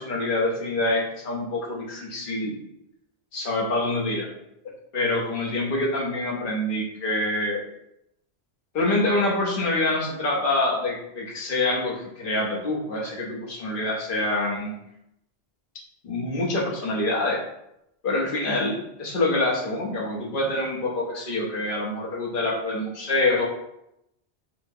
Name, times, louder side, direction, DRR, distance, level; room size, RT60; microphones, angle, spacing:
voice 1, 0.0-2.5 3.3-4.2 4.9-7.6 8.7-14.7 16.0-17.4 18.0-23.5, left 2 dB, 55° left, -3 dB, 0.9 m, -26 dB
4.6 x 2.1 x 2.6 m, 0.81 s
omnidirectional pair, 1.1 m